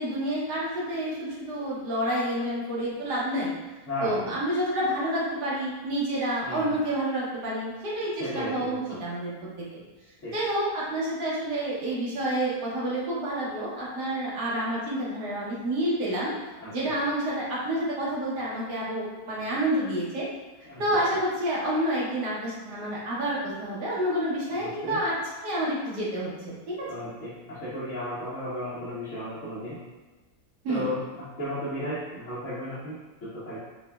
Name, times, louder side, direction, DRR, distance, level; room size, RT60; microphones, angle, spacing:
voice 1, 0.0-3.5 4.0-9.3 9.7-9.8 10.3-16.3 16.7-20.2 20.8-25.1 25.4-26.9 30.6-30.9, right 1 dB, 85° right, -6 dB, 1.5 m, -29 dB
voice 2, 3.9-4.3 6.4-6.8 8.2-9.0 10.2-10.4 16.6-16.7 20.7-21.0 24.6-25.0 26.9-29.8 30.7-33.6, equal, 55° left, -11 dB, 1.1 m, -34 dB
4.8 x 2.2 x 2.2 m, 1.2 s
omnidirectional pair, 1.7 m